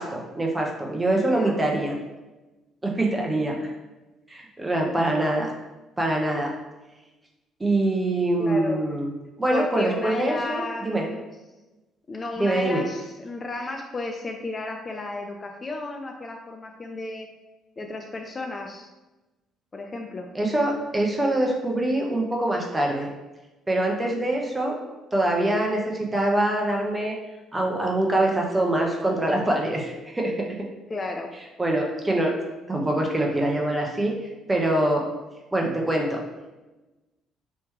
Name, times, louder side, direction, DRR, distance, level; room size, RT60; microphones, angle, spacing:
voice 1, 0.0-1.9 2.8-3.7 4.3-5.5 6.0-6.5 7.6-9.1 9.4-11.1 12.4-12.8 20.3-23.1 23.7-24.8 25.1-27.1 27.5-30.6 31.6-32.3 32.7-34.1 34.5-35.0 35.5-36.2, right 1 dB, 20° right, 0 dB, 0.9 m, -24 dB
voice 2, 1.2-1.6 8.4-8.9 9.5-11.2 12.1-17.3 17.8-18.9 19.7-20.3 30.9-31.3, left 2 dB, 35° left, 3 dB, 0.4 m, -33 dB
3.2 x 3.1 x 3.1 m, 1.1 s
figure-of-eight pair, 50°, 0 cm